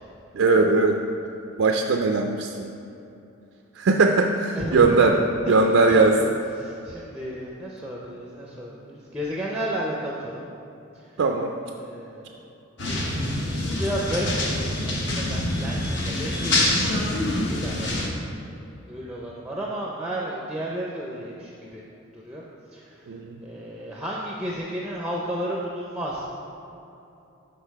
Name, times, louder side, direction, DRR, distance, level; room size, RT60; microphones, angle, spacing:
voice 1, 0.3-1.0 1.6-2.7 3.8-5.2 5.5-6.2 11.2-11.5 23.1-23.4, right 3 dB, 70° right, 2 dB, 0.4 m, -19 dB
voice 2, 4.5-5.1 5.5-5.6 5.9-6.1 6.5-10.5 10.9-11.1 11.8-12.4 13.6-17.9 18.4-21.8 22.1-22.4 22.7-23.1 23.4-26.3, right 1 dB, 5° right, -4 dB, 0.5 m, -33 dB
sound 1, 12.8-18.1, left 1 dB, 55° left, 0.9 m, -25 dB
6.6 x 5.3 x 4.6 m, 2.8 s
head